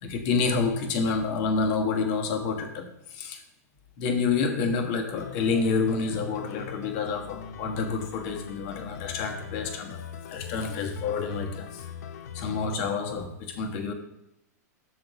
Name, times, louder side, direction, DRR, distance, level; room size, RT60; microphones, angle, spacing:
voice 1, 0.0-3.4 4.0-11.8 12.3-13.9, left 4 dB, 50° left, 1.3 m, -28 dB
sound 1, 5.2-12.8, left 8 dB, 75° left, 0.7 m, -41 dB
7.0 x 3.9 x 6.0 m
hypercardioid pair, 115°, 9 cm